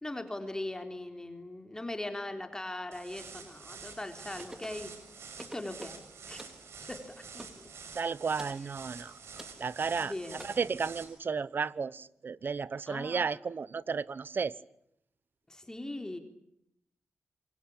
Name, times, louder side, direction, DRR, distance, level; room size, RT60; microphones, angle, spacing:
voice 1, 0.0-4.9 5.5-6.4 6.8-7.7 10.0-10.5 12.9-13.2 15.5-16.2, left 1 dB, 15° left, 3.8 m, -40 dB
sound 1, 2.9-11.0, right 5 dB, 80° right, 6.7 m, -48 dB
sound 2, 4.4-4.8 5.4-6.0 6.4-6.6 7.4-7.6 8.4-8.6 9.4-9.6 10.4-10.5, right 1 dB, 10° right, 3.7 m, -47 dB
voice 2, 7.9-9.1 9.6-10.1 10.6-14.5, right 5 dB, 50° right, 1.0 m, -33 dB
27.5 x 23.5 x 8.7 m
wide cardioid pair, 100°, 4 cm